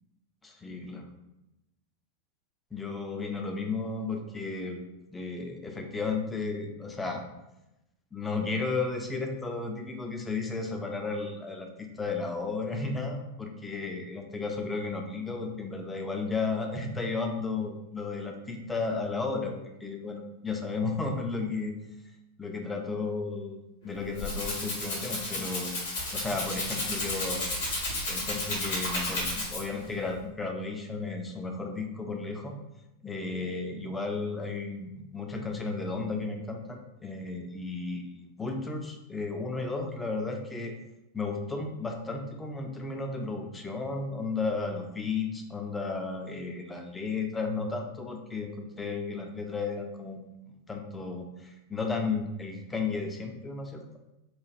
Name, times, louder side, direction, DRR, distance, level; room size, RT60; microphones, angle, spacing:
voice 1, 0.4-1.0 2.7-4.8 5.1-7.2 8.1-21.7 22.4-23.6 23.8-27.5 28.1-32.5 33.0-40.8 41.1-53.8, left 3 dB, 10° left, 3 dB, 0.4 m, -34 dB
Rattle (instrument), 23.9-29.9, left 2 dB, 60° left, 1.0 m, -33 dB
3.1 x 2.2 x 2.5 m, 0.91 s
figure-of-eight pair, 90°, 0 cm